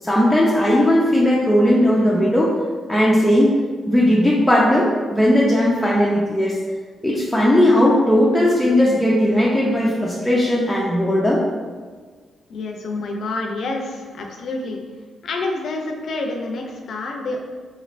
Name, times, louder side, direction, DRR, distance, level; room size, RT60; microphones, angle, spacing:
voice 1, 0.0-2.5 2.9-3.6 3.9-6.6 7.0-11.4, left 1 dB, 5° left, -6 dB, 0.5 m, -17 dB
voice 2, 12.5-14.8 15.2-17.4, left 2 dB, 65° left, 2 dB, 0.5 m, -28 dB
4.1 x 3.1 x 2.5 m, 1.5 s
cardioid pair, 115°, 0 cm